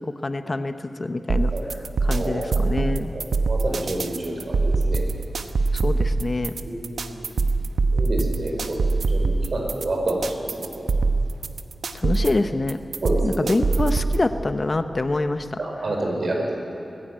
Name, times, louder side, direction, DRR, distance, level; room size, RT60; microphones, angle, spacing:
voice 1, 0.0-1.5 2.0-3.1 5.7-6.5 11.9-12.8 13.2-15.6, left 2 dB, 35° left, 9 dB, 0.8 m, -25 dB
sound 1, 1.3-14.3, right 3 dB, 85° right, 0.9 m, -23 dB
voice 2, 2.1-2.5 3.1-5.0 6.6-7.3 7.9-10.9 13.0-13.5 15.6-16.5, right 1 dB, 55° right, 0 dB, 5.3 m, -28 dB
21.0 x 15.0 x 9.4 m, 3.0 s
wide cardioid pair, 85°, 0 cm